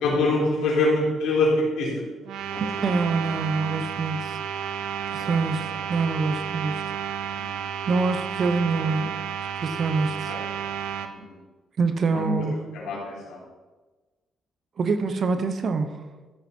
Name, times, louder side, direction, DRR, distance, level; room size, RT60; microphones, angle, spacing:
voice 1, 0.0-1.5 1.8-1.9 2.5-2.6 5.1-5.3 10.3-10.4 12.1-12.3 12.7-13.4, left 2 dB, 85° left, -4 dB, 4.3 m, -24 dB
sound 1, 2.2-11.1, right 8 dB, 80° right, 0.8 m, -31 dB
voice 2, 2.8-4.4 5.1-6.8 7.9-9.1 9.6-10.3 11.8-12.6 14.8-15.9, right 4 dB, 50° right, 9 dB, 1.1 m, -25 dB
15.0 x 7.4 x 4.6 m, 1.3 s
cardioid pair, 90°, 0 cm